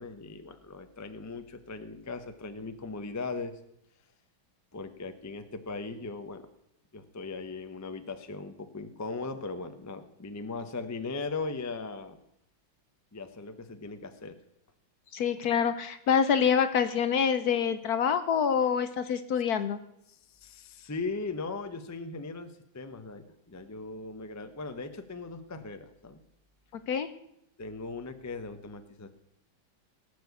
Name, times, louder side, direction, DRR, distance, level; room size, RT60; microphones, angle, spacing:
voice 1, 0.0-3.6 4.7-6.5 6.9-12.2 13.1-14.4 20.1-26.2 27.6-29.1, left 3 dB, 20° left, 9 dB, 0.4 m, -38 dB
voice 2, 15.1-19.8 26.9-27.1, left 7 dB, 60° left, 11 dB, 1.1 m, -26 dB
18.5 x 6.4 x 8.3 m, 0.80 s
omnidirectional pair, 2.1 m